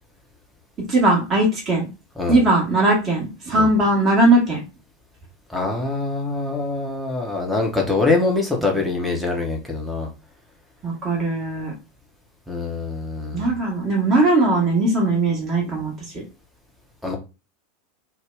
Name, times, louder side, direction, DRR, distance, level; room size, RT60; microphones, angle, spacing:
voice 1, 0.9-1.9 2.3-4.6 10.8-11.7 13.3-15.9, right 2 dB, 25° right, -2 dB, 1.2 m, -19 dB
voice 2, 5.5-10.1 12.5-13.5 17.0-17.2, left 3 dB, ahead, -2 dB, 0.8 m, -24 dB
2.6 x 2.2 x 3.2 m, 0.29 s
figure-of-eight pair, 85°, 0 cm